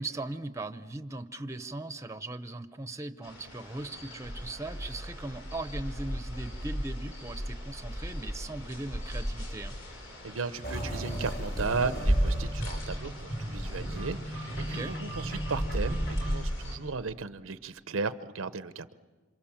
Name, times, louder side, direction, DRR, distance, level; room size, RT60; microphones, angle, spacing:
voice 1, 0.0-9.8 14.7-14.9, right 2 dB, 15° right, 10 dB, 0.7 m, -39 dB
sound 1, 3.2-16.8, equal, 85° left, 5.8 m, -35 dB
voice 2, 10.2-18.9, right 4 dB, 90° right, 13 dB, 0.8 m, -35 dB
sound 2, 10.6-16.4, right 1 dB, 55° left, 6.3 m, -37 dB
28.0 x 26.0 x 7.3 m, 1.4 s
head